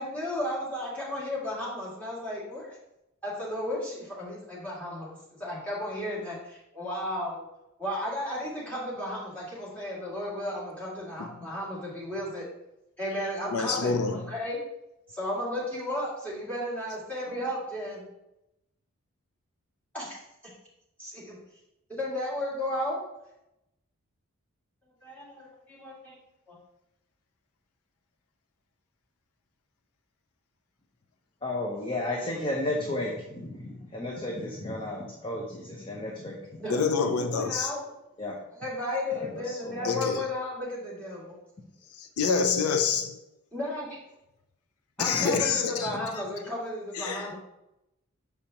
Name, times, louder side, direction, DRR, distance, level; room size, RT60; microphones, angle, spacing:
voice 1, 0.0-2.8 3.2-7.4 7.8-12.4 13.0-14.6 15.1-18.0 19.9-20.2 21.0-21.4 21.9-23.0 25.0-26.2 26.5-26.6 36.6-37.9 38.6-41.3 43.5-44.0 45.0-47.4, left 1 dB, 5° left, 2.2 m, -34 dB
voice 2, 13.5-14.3 36.7-37.7 39.8-40.2 42.0-43.2 45.0-45.9 46.9-47.3, left 5 dB, 80° left, 0.5 m, -27 dB
voice 3, 31.4-36.4 38.2-38.4 39.1-40.0 45.1-45.5 45.9-46.0, left 1 dB, 25° left, 0.7 m, -33 dB
7.1 x 5.0 x 2.9 m
head